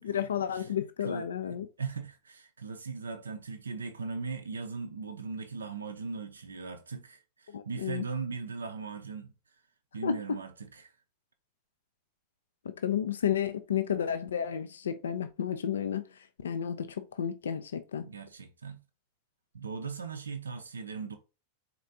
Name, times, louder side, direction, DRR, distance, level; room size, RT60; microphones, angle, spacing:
voice 1, 0.0-1.7 7.5-8.0 10.0-10.2 12.8-16.0 16.4-18.1, left 8 dB, 65° left, 0.4 m, -32 dB
voice 2, 1.8-9.3 9.9-10.9 18.0-18.8 19.5-21.2, right 4 dB, 70° right, 0.5 m, -39 dB
4.3 x 4.0 x 2.7 m
figure-of-eight pair, 90°, 0 cm